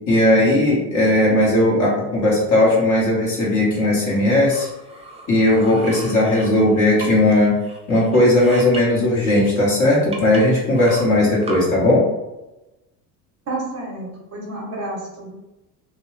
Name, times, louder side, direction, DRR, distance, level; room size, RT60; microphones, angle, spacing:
voice 1, 0.1-4.7 5.3-7.5 7.9-12.0, left 1 dB, 35° left, -5 dB, 1.4 m, -17 dB
sound 1, 4.2-7.3 7.6-8.8 9.4-9.5 10.1-11.6, right 2 dB, 15° right, 0.5 m, -37 dB
voice 2, 13.5-15.3, right 2 dB, 30° right, -3 dB, 1.0 m, -30 dB
2.7 x 2.3 x 3.3 m, 0.99 s
supercardioid pair, 85°, 49 cm